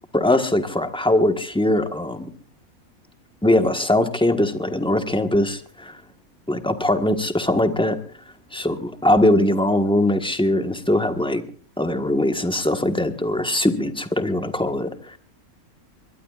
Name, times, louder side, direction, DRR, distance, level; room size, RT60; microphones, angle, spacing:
voice 1, 0.1-2.3 3.4-6.0 6.5-8.0 8.5-8.7 9.0-11.4 11.8-15.2, left 1 dB, 5° left, 7 dB, 1.2 m, -21 dB
22.5 x 21.5 x 2.5 m, 0.39 s
omnidirectional pair, 1.5 m